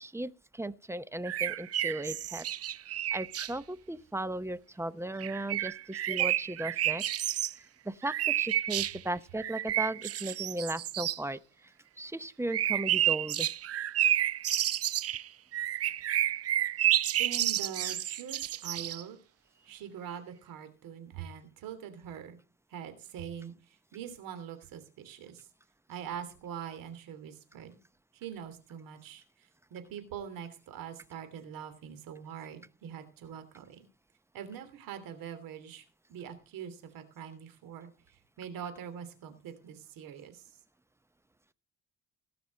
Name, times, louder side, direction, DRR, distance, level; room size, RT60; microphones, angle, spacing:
voice 1, 0.0-2.5 3.1-7.0 7.8-11.4 12.0-13.5, right 1 dB, 10° right, 0.7 m, -36 dB
sound 1, 1.2-3.5 5.2-7.5 8.0-9.0 9.4-11.2 12.5-19.0, right 12 dB, 45° right, 0.5 m, -30 dB
voice 2, 17.2-19.2 19.7-22.4 22.7-25.5 25.9-27.8 28.1-33.8 34.3-35.8 36.1-37.9 38.4-40.5, right 8 dB, 85° right, 3.0 m, -43 dB
17.5 x 6.0 x 6.4 m
cardioid pair, 90°, 33 cm